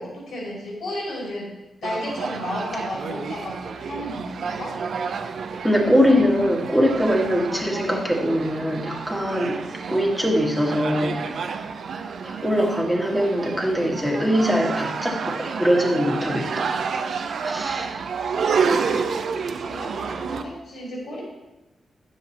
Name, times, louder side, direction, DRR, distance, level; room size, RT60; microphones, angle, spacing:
voice 1, 0.0-1.5 1.8-4.8 18.2-21.2, left 1 dB, 80° left, -3 dB, 3.3 m, -33 dB
sound 1, 1.8-20.4, right 5 dB, 70° right, 0.6 m, -29 dB
voice 2, 5.6-9.6 9.9-11.2 12.2-16.7 17.4-17.9, equal, ahead, 0 dB, 1.7 m, -22 dB
9.5 x 7.4 x 4.2 m, 1.0 s
cardioid pair, 105°, 0 cm